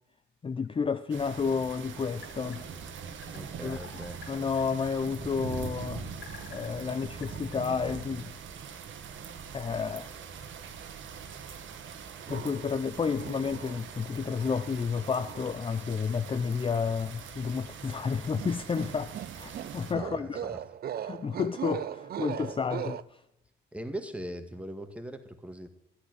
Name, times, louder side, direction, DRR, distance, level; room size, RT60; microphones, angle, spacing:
voice 1, 0.4-2.7 3.6-3.8 4.3-6.1 6.5-8.3 9.5-10.1 12.3-20.5 21.0-23.0, left 5 dB, 25° left, 0.5 m, -31 dB
sound 1, 0.6-8.1, left 7 dB, 65° left, 1.7 m, -53 dB
sound 2, 1.1-19.9, right 6 dB, 75° right, 1.6 m, -43 dB
voice 2, 3.3-4.2 19.9-20.6 23.7-25.7, right 1 dB, 5° right, 1.8 m, -40 dB
sound 3, 12.3-12.8 13.2-14.0 14.4-15.6 18.3-23.0, right 10 dB, 50° right, 0.5 m, -39 dB
11.5 x 9.9 x 9.3 m
cardioid pair, 90°, 20 cm